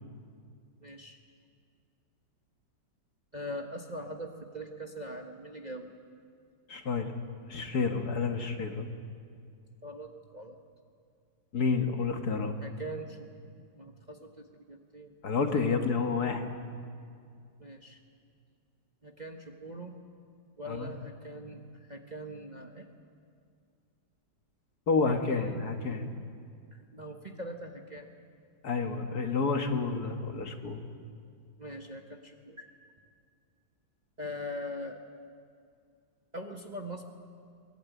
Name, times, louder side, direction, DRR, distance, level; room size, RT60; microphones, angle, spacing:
voice 1, 0.8-1.2 3.3-5.9 9.8-10.6 12.6-15.2 17.6-18.0 19.0-19.9 20.6-22.9 25.3-25.6 26.7-28.1 31.6-32.7 34.2-35.0 36.3-37.0, equal, 25° right, 3 dB, 1.2 m, -42 dB
voice 2, 6.7-7.2 7.5-8.9 11.5-12.6 15.2-16.5 20.7-20.9 24.9-26.1 28.6-30.8, left 4 dB, 55° left, 5 dB, 2.0 m, -29 dB
23.0 x 20.0 x 9.3 m, 2.3 s
omnidirectional pair, 2.1 m